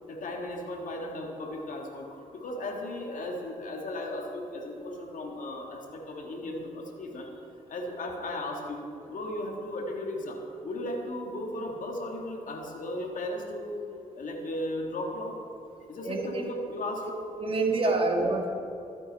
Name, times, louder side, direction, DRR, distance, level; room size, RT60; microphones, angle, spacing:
voice 1, 0.1-7.3 7.7-13.8 14.1-15.4 15.9-17.1 17.8-18.0, left 1 dB, 60° left, 1 dB, 2.0 m, -36 dB
voice 2, 16.0-16.5 17.4-18.5, right 2 dB, 40° right, 2 dB, 2.0 m, -27 dB
13.0 x 9.4 x 4.3 m, 2.7 s
supercardioid pair, 55°, 15 cm